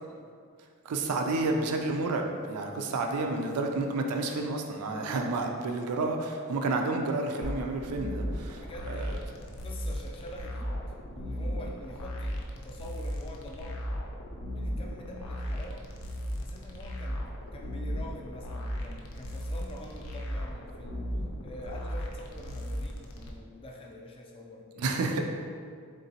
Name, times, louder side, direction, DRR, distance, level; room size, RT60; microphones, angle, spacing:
voice 1, 0.8-9.2 24.8-25.3, right 3 dB, 90° right, 3 dB, 0.4 m, -30 dB
sound 1, 7.4-23.3, equal, 75° left, 0.5 m, -36 dB
voice 2, 8.6-9.1 9.5-10.8 11.1-14.0 14.5-15.9 16.4-21.2 21.4-24.7, left 1 dB, 25° left, 0 dB, 0.4 m, -45 dB
3.8 x 3.6 x 2.8 m, 2.2 s
head